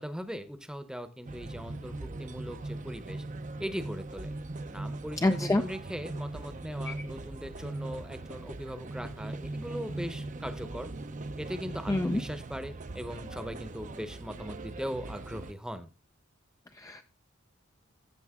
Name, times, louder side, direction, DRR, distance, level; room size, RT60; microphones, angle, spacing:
voice 1, 0.0-3.2 3.6-4.3 4.7-10.9 11.4-15.9, equal, 5° right, 11 dB, 0.9 m, -39 dB
sound 1, 1.3-15.5, right 2 dB, 40° right, 0.6 m, -40 dB
voice 2, 5.2-5.6 6.9-7.0 11.9-12.2 16.8-17.0, left 2 dB, 15° left, 7 dB, 0.4 m, -26 dB
14.0 x 7.2 x 3.6 m, 0.31 s
head